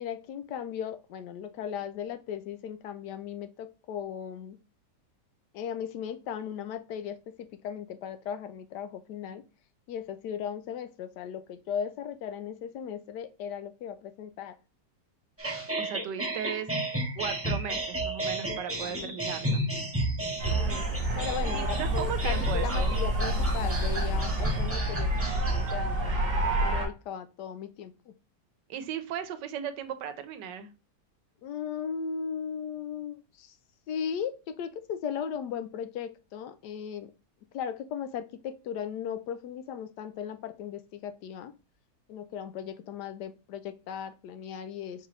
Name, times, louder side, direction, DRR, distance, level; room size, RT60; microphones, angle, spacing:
voice 1, 0.0-4.6 5.5-9.4 9.9-14.6 18.5-19.2 20.2-28.1 31.4-33.5 33.9-37.1 37.5-41.5 42.1-45.1, left 8 dB, 75° left, 1.1 m, -37 dB
sound 1, 15.4-25.7, right 2 dB, 10° right, 0.7 m, -33 dB
voice 2, 15.8-16.7 17.2-19.6 21.5-23.0 28.7-30.7, right 8 dB, 85° right, 1.3 m, -36 dB
sound 2, 20.4-26.9, right 1 dB, 50° right, 1.6 m, -28 dB
4.5 x 3.8 x 3.1 m
omnidirectional pair, 1.8 m